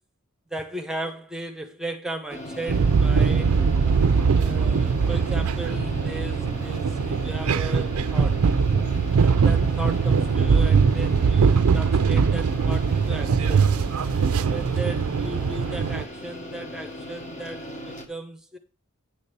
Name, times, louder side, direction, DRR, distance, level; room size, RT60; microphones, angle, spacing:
voice 1, 0.5-3.7 4.3-8.5 9.2-13.7 14.4-18.6, right 1 dB, 5° right, 0.9 m, -36 dB
sound 1, 2.3-18.1, equal, 35° left, 1.3 m, -38 dB
sound 2, 2.7-16.0, right 5 dB, 85° right, 0.5 m, -21 dB
9.6 x 4.1 x 6.7 m
head